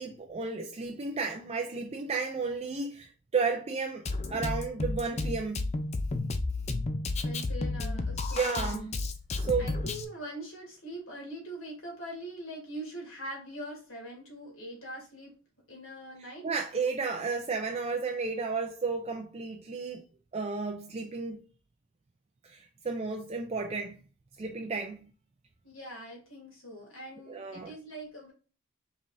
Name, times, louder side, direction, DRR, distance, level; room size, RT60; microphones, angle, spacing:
voice 1, 0.0-4.0 4.3-5.7 8.3-8.9 9.4-9.9 16.2-20.1 20.3-21.4 22.4-24.0 24.4-25.1 27.3-27.7, right 4 dB, 30° right, 0.4 m, -33 dB
Drum kit, 4.1-10.1, left 2 dB, 30° left, 0.5 m, -32 dB
voice 2, 7.2-8.7 9.6-15.3 15.7-16.5 25.6-28.3, equal, 75° left, 2.5 m, -42 dB
5.2 x 3.5 x 2.6 m
head